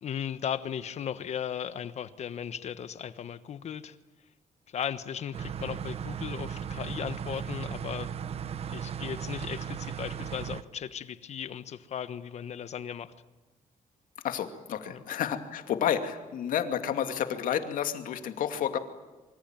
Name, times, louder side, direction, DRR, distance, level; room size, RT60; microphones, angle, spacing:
voice 1, 0.0-4.0 4.7-8.1 8.7-13.1 14.9-15.0, left 9 dB, 50° left, 13 dB, 1.3 m, -36 dB
sound 1, 5.3-10.6, right 8 dB, 45° right, 1.0 m, -36 dB
voice 2, 14.2-18.8, left 9 dB, 75° left, 7 dB, 2.5 m, -30 dB
26.0 x 24.5 x 9.1 m, 1.2 s
cardioid pair, 160°, 14 cm